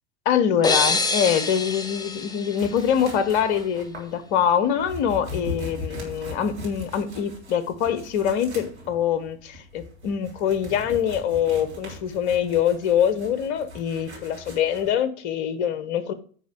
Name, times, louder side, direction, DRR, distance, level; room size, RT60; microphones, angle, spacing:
voice 1, 0.2-16.1, left 8 dB, 55° left, 13 dB, 1.2 m, -24 dB
sound 1, 0.6-3.4, left 3 dB, 10° left, 1.0 m, -26 dB
sound 2, 2.6-14.9, left 1 dB, 85° right, 2.9 m, -40 dB
10.0 x 3.9 x 6.2 m, 0.43 s
figure-of-eight pair, 80°, 33 cm